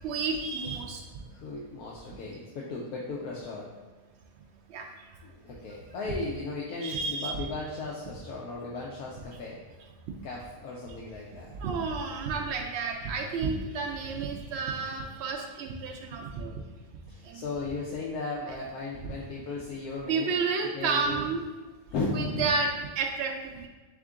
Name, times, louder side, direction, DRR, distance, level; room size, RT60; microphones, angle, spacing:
voice 1, 0.0-1.0 4.7-4.9 6.8-7.4 11.6-16.5 17.2-17.4 18.5-18.6 20.1-21.4 22.1-23.7, right 4 dB, 85° right, 2 dB, 0.5 m, -31 dB
voice 2, 1.3-3.7 5.2-9.6 10.2-11.6 17.1-20.3 20.7-21.3 21.9-22.4, left 3 dB, 75° left, -4 dB, 1.1 m, -36 dB
3.7 x 3.6 x 3.5 m, 1.3 s
omnidirectional pair, 1.7 m